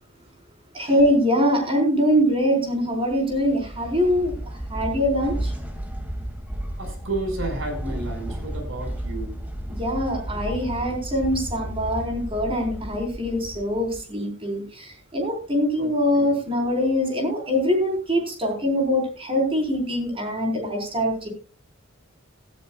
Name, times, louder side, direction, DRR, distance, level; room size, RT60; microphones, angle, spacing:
voice 1, 0.7-4.3 4.7-5.5 9.8-21.3, equal, 25° right, 2 dB, 4.6 m, -23 dB
sound 1, 3.0-14.0, right 1 dB, 10° right, 2.3 m, -33 dB
voice 2, 6.8-9.4 15.8-16.4, right 2 dB, 70° right, 5 dB, 5.3 m, -32 dB
17.5 x 13.5 x 2.4 m, 0.36 s
head